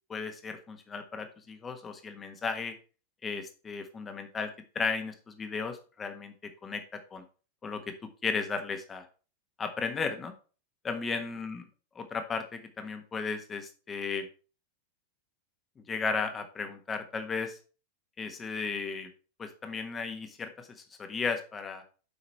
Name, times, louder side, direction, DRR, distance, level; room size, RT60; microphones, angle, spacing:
voice 1, 0.1-2.7 3.2-4.5 4.7-7.2 7.6-9.1 9.6-10.3 10.8-11.6 12.0-14.3 15.9-17.6 18.2-19.1 19.4-21.8, left 5 dB, 20° left, 7 dB, 1.4 m, -35 dB
8.1 x 5.6 x 4.2 m, 0.36 s
figure-of-eight pair, 90°, 0 cm